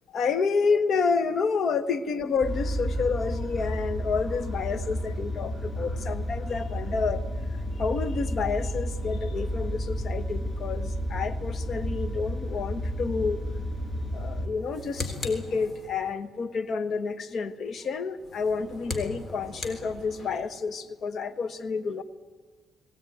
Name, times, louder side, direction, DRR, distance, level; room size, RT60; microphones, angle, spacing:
voice 1, 0.1-7.2 7.8-13.5 14.1-22.0, left 5 dB, 55° left, 13 dB, 1.3 m, -29 dB
sound 1, 2.4-14.5, equal, 25° left, 6.6 m, -31 dB
sound 2, 14.5-16.2 18.2-20.5, left 3 dB, 40° left, 3.6 m, -38 dB
22.0 x 17.0 x 9.3 m, 1.4 s
cardioid pair, 90°, 0 cm